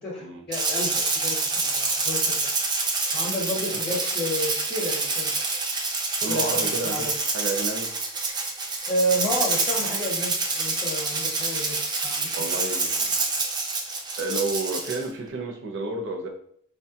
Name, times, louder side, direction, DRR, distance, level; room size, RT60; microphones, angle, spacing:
voice 1, 0.0-2.4 3.1-5.3 6.3-7.1 8.9-11.8 12.0-12.5, equal, 20° left, -5 dB, 0.7 m, -31 dB
Rattle (instrument), 0.5-15.0, right 3 dB, 20° right, 0.4 m, -27 dB
voice 2, 6.2-7.9 12.3-13.2 14.2-16.3, right 2 dB, 55° right, 1 dB, 0.6 m, -31 dB
4.2 x 2.3 x 2.7 m, 0.66 s
head